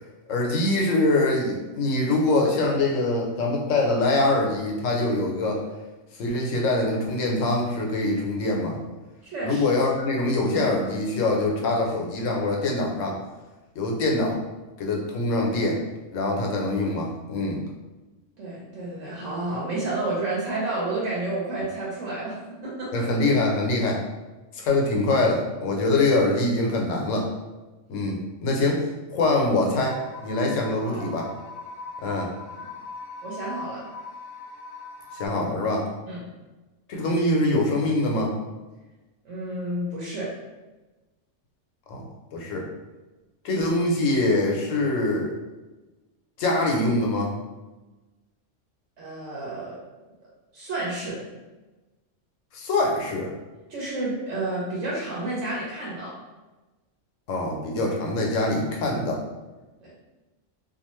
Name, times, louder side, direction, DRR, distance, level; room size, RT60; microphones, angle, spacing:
voice 1, 0.3-5.6 6.2-8.8 9.4-13.2 13.8-14.4 14.8-15.8 16.1-17.6 22.9-24.0 24.5-27.3 27.9-28.8 29.1-31.3 32.0-32.3 35.1-35.9 36.9-38.4 41.9-42.0 42.3-42.7 43.4-45.3 46.4-47.3 52.5-53.3 57.3-59.2, left 2 dB, 90° left, 0 dB, 1.0 m, -24 dB
voice 2, 9.2-9.7 18.4-23.1 30.8-31.1 32.5-32.6 33.2-33.8 36.1-36.3 39.2-40.3 49.0-49.8 50.5-51.3 53.7-56.2 59.8-59.9, right 2 dB, 75° right, -6 dB, 1.1 m, -30 dB
sound 1, 29.7-35.3, left 3 dB, 65° left, 0.8 m, -40 dB
2.5 x 2.4 x 3.0 m, 1.1 s
omnidirectional pair, 1.3 m